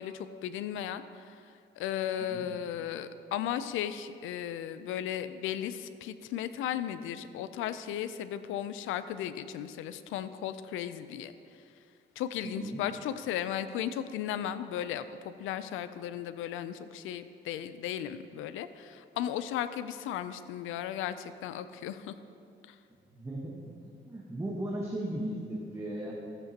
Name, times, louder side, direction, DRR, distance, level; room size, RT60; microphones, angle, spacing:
voice 1, 0.0-11.6 12.2-22.1 22.6-22.8, left 10 dB, 90° left, 12 dB, 0.5 m, -36 dB
voice 2, 12.4-12.8 23.1-23.5 24.1-26.1, right 1 dB, 15° right, -3 dB, 1.3 m, -36 dB
14.0 x 8.0 x 2.9 m, 2.5 s
cardioid pair, 90°, 20 cm